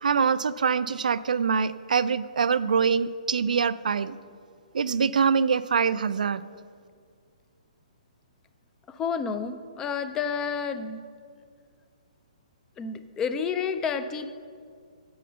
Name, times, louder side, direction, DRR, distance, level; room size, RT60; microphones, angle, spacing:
voice 1, 0.0-4.1 4.7-6.4, right 6 dB, 85° right, 14 dB, 0.4 m, -24 dB
voice 2, 8.9-11.0 12.8-14.3, left 6 dB, 10° left, 11 dB, 0.4 m, -30 dB
8.7 x 7.7 x 7.7 m, 2.1 s
hypercardioid pair, 160°, 4 cm